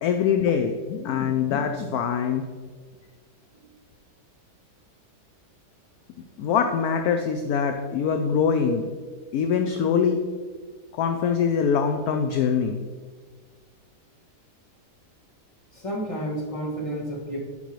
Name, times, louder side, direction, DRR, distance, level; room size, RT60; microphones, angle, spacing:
voice 1, 0.0-2.5 6.4-8.9 9.3-10.2 10.9-12.8, left 6 dB, 70° left, 5 dB, 1.0 m, -23 dB
voice 2, 15.7-17.4, right 1 dB, 20° left, -4 dB, 1.7 m, -31 dB
11.5 x 5.4 x 3.1 m, 1.5 s
omnidirectional pair, 1.8 m